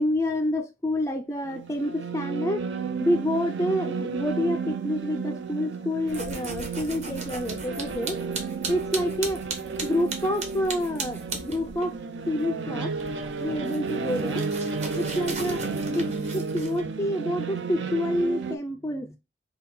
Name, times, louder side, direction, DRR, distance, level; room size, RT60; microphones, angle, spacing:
voice 1, 0.0-2.6 3.0-8.2 8.7-9.4 9.8-12.0 12.3-12.9 13.4-14.5 15.0-19.2, left 1 dB, 15° left, 0.3 m, -28 dB
sound 1, 1.4-18.6, right 4 dB, 85° right, 0.6 m, -32 dB
sound 2, 6.1-12.0 12.2-16.8, right 3 dB, 40° right, 0.9 m, -38 dB
5.7 x 2.2 x 4.1 m
head